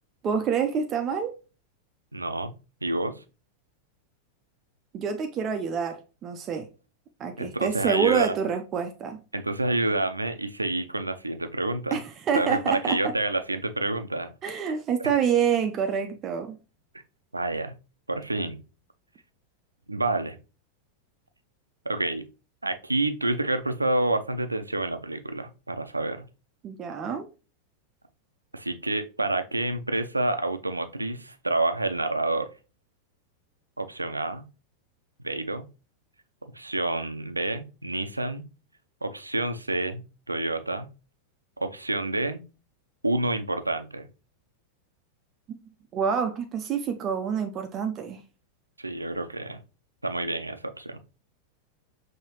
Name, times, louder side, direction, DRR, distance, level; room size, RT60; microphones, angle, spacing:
voice 1, 0.2-1.4 4.9-6.7 7.2-9.2 11.9-13.1 14.4-16.6 26.6-27.3 45.9-48.2, right 7 dB, 30° right, 0.5 m, -27 dB
voice 2, 2.1-2.5 2.8-3.2 7.4-8.3 9.3-12.0 12.3-14.3 17.3-17.7 18.1-18.6 19.9-20.4 21.9-22.2 22.6-26.2 28.5-32.5 33.8-34.4 35.2-35.7 36.5-38.4 39.0-40.9 41.6-42.4 43.0-44.1 48.8-49.6 50.0-51.0, right 2 dB, 85° right, 0.5 m, -28 dB
5.5 x 2.7 x 2.9 m
figure-of-eight pair, 90°, 0 cm